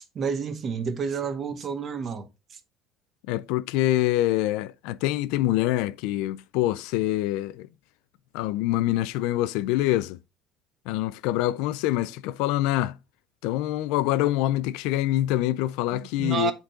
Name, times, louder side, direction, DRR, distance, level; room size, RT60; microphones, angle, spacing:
voice 1, 0.0-2.6 15.9-16.5, right 6 dB, 30° right, 0.9 m, -30 dB
voice 2, 3.3-7.7 8.3-10.2 10.9-13.0 13.4-16.5, left 15 dB, 85° left, 0.4 m, -25 dB
8.8 x 3.9 x 3.8 m
cardioid pair, 170°, 0 cm